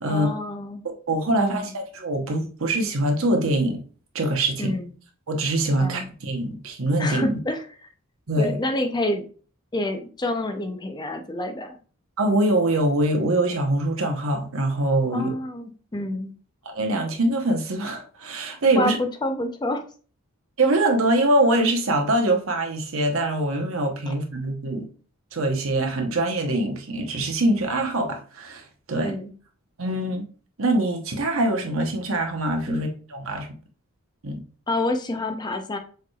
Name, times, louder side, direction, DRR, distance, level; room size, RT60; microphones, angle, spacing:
voice 1, 0.1-0.9 1.3-1.7 4.6-4.9 5.8-6.1 7.0-7.6 8.4-9.2 9.7-11.8 15.1-16.3 18.5-19.8 24.1-24.2 29.0-29.3 32.7-32.8 34.7-35.8, left 1 dB, 20° left, 6 dB, 0.5 m, -28 dB
voice 2, 0.8-3.8 4.1-4.7 5.3-7.4 8.3-8.6 12.2-15.3 16.6-19.0 20.6-24.9 25.3-29.1 29.8-30.2 30.6-33.5 34.2-34.4, right 1 dB, 65° right, 3 dB, 0.9 m, -23 dB
6.6 x 3.2 x 2.3 m, 0.40 s
head